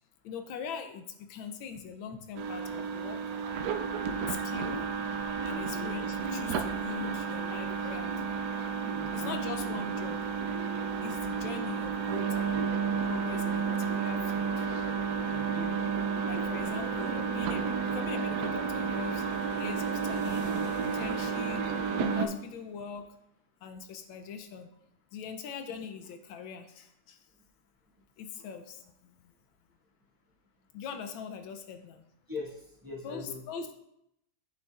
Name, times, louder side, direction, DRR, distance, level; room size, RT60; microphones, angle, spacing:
voice 1, 0.2-3.2 4.3-5.1 5.4-8.2 9.1-10.2 11.0-12.7 13.1-14.7 16.3-19.2 19.6-20.5 20.8-21.7 22.1-23.1 23.6-24.7 25.1-27.2 28.2-29.3 30.7-32.0 33.0-33.7, left 6 dB, 80° left, 7 dB, 1.4 m, -42 dB
sound 1, 2.4-22.3, right 5 dB, 75° right, 0.9 m, -32 dB
voice 2, 5.5-5.9 8.9-9.4 15.3-15.8 32.3-33.4, left 3 dB, 10° right, -7 dB, 1.7 m, -41 dB
sound 2, 18.7-22.9, right 2 dB, 90° right, 2.3 m, -48 dB
8.6 x 6.9 x 2.4 m, 0.79 s
omnidirectional pair, 2.2 m